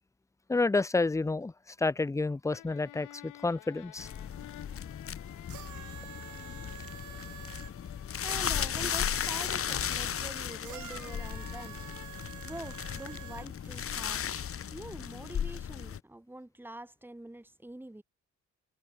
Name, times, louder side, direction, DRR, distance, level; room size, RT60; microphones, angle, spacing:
voice 1, 0.5-1.5 1.8-4.1, left 3 dB, 10° left, 0.6 m, -29 dB
sound 1, 2.5-12.1, left 16 dB, 85° left, 1.5 m, -53 dB
sound 2, 4.0-16.0, left 8 dB, 50° left, 1.6 m, -36 dB
sound 3, 5.4-8.5 10.6-13.9 14.8-14.9, right 12 dB, 75° right, 3.8 m, -48 dB
voice 2, 7.9-11.8 12.4-14.2 14.7-18.0, right 1 dB, 5° right, 2.8 m, -45 dB
cardioid pair, 90°, 30 cm